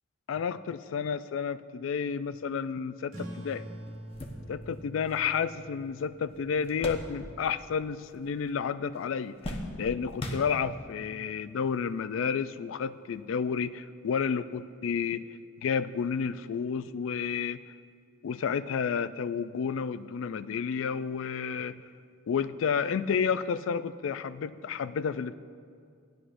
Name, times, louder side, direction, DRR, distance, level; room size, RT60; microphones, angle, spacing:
voice 1, 0.3-3.6 4.5-15.3 15.6-17.6 18.2-21.7 22.3-25.4, left 6 dB, 80° left, 13 dB, 0.3 m, -31 dB
sound 1, 3.1-8.2, right 1 dB, 85° right, 2.4 m, -46 dB
sound 2, 3.4-3.5 3.9-7.7 7.9-8.6 8.9-11.0 11.8-11.9 13.2-13.3, left 1 dB, 30° left, 0.9 m, -41 dB
16.0 x 11.5 x 2.5 m, 2.2 s
head